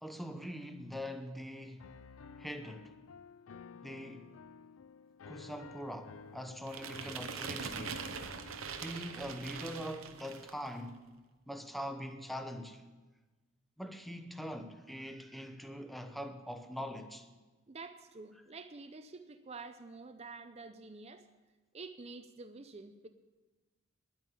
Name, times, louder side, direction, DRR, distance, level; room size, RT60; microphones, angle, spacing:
voice 1, 0.0-2.0 2.4-2.9 3.8-4.3 5.3-8.1 8.8-11.0 11.5-12.8 13.8-17.3, equal, ahead, 0.8 m, -43 dB
Piano, 1.8-8.6, left 5 dB, 80° left, 0.5 m, -53 dB
sound 1, 6.7-10.7, right 6 dB, 80° right, 0.9 m, -42 dB
voice 2, 17.7-21.3 21.7-23.1, right 3 dB, 30° right, 0.5 m, -48 dB
10.5 x 9.0 x 8.3 m
head